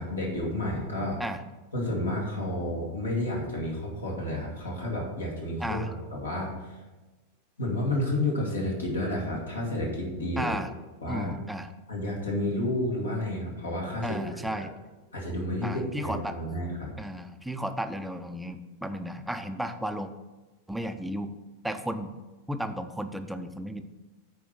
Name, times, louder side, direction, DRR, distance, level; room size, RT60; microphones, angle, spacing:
voice 1, 0.0-1.2 1.7-6.8 7.6-10.6 11.0-11.3 11.9-14.7 15.1-16.9, left 1 dB, 75° left, -1 dB, 2.1 m, -31 dB
voice 2, 10.4-10.7 11.1-11.7 14.0-14.7 15.6-16.4 17.0-20.1 20.7-21.3 21.6-22.1 22.5-23.8, right 1 dB, 5° right, 8 dB, 0.5 m, -34 dB
9.2 x 4.6 x 5.2 m, 1.2 s
figure-of-eight pair, 90°, 0 cm